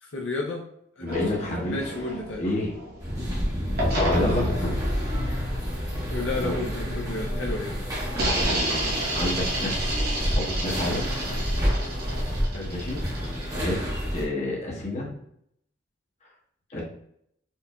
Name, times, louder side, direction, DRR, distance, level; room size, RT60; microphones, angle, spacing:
voice 1, 0.0-0.6 1.0-2.4 4.1-4.6 6.1-7.8 8.2-8.3 12.5-12.7 16.7-16.8, left 2 dB, 75° left, -2 dB, 0.6 m, -33 dB
voice 2, 1.0-1.8 2.3-2.7 4.0-4.7 5.3-5.4 6.4-6.5 8.3-11.1 12.1-12.2 12.6-13.8 14.1-15.1 16.7-16.8, left 1 dB, 40° left, -3 dB, 1.1 m, -30 dB
sound 1, 1.1-3.4 3.8-7.4 8.1-13.9, equal, 55° right, 1.0 m, -31 dB
sound 2, 3.0-14.2, equal, 20° right, 1.0 m, -29 dB
4.5 x 2.7 x 2.2 m, 0.71 s
head